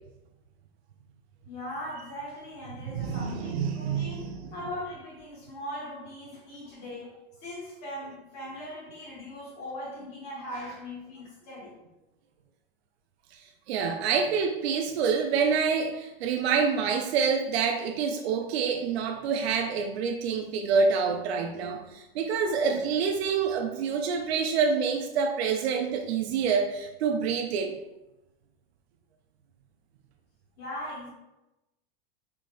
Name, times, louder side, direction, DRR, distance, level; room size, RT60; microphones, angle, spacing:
voice 1, 1.4-7.1 7.4-11.7 30.6-31.1, left 1 dB, 30° left, -5 dB, 1.4 m, -39 dB
voice 2, 2.9-4.4 13.7-27.7, right 5 dB, 80° right, 3 dB, 0.5 m, -27 dB
4.5 x 2.5 x 2.3 m, 0.95 s
supercardioid pair, 165°, 31 cm